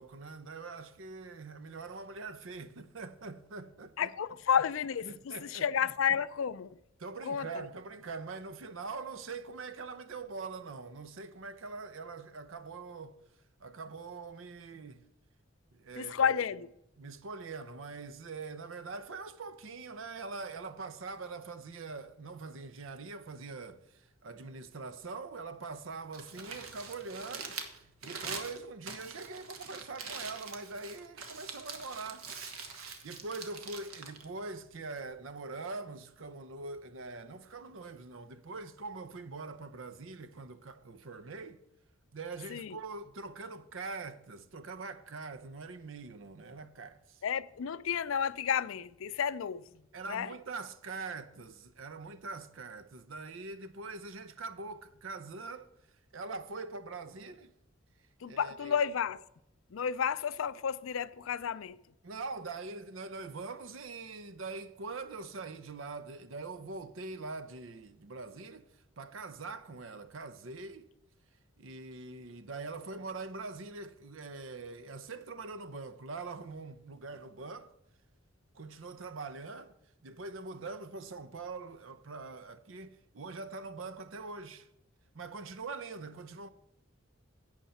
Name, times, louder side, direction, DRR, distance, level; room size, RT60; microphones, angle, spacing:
voice 1, 0.0-4.1 4.5-4.6 5.0-5.7 7.0-13.2 13.6-15.0 15.7-16.4 17.0-27.6 28.0-32.3 33.0-41.6 42.1-47.2 49.9-55.7 56.1-57.5 58.3-58.8 62.0-68.6 69.0-70.9 71.6-77.7 78.5-79.8 80.0-84.7 85.1-86.5, right 3 dB, 70° right, 0.7 m, -43 dB
voice 2, 4.0-6.8 7.3-7.7 16.0-16.7 42.5-42.8 47.2-49.7 50.1-50.3 58.2-59.2 59.7-61.8, left 7 dB, 75° left, 0.4 m, -31 dB
Crumpling crinkling, 26.0-35.1, right 5 dB, 90° right, 1.3 m, -44 dB
11.0 x 8.1 x 4.2 m
head